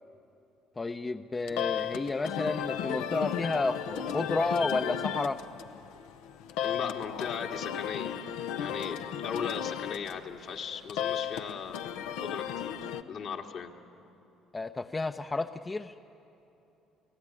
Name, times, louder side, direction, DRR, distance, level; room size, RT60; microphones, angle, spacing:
voice 1, 0.8-5.4 14.5-15.9, left 3 dB, 25° left, 7 dB, 0.7 m, -31 dB
sound 1, 1.5-13.0, left 9 dB, 80° left, 0.8 m, -35 dB
voice 2, 6.6-8.2 8.6-11.8 12.2-12.7 13.1-13.7, left 7 dB, 65° left, 1 dB, 2.1 m, -37 dB
29.0 x 16.5 x 9.8 m, 2.9 s
supercardioid pair, 70°, 0 cm